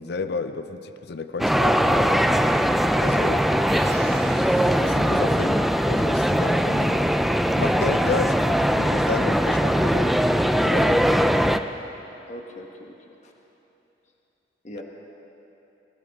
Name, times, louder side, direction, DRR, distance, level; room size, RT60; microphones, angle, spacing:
voice 1, 0.0-2.2 3.0-3.6 4.8-7.2 7.5-10.3 10.6-11.4, left 3 dB, 65° left, 10 dB, 0.6 m, -32 dB
sound 1, 1.4-11.6, equal, ahead, 0.4 m, -21 dB
sound 2, 3.7-5.6, right 6 dB, 65° right, 0.8 m, -42 dB
voice 2, 12.3-12.9 13.2-13.3 14.6-14.8, left 1 dB, 40° left, 1 dB, 1.2 m, -40 dB
20.0 x 19.0 x 3.6 m, 3.0 s
head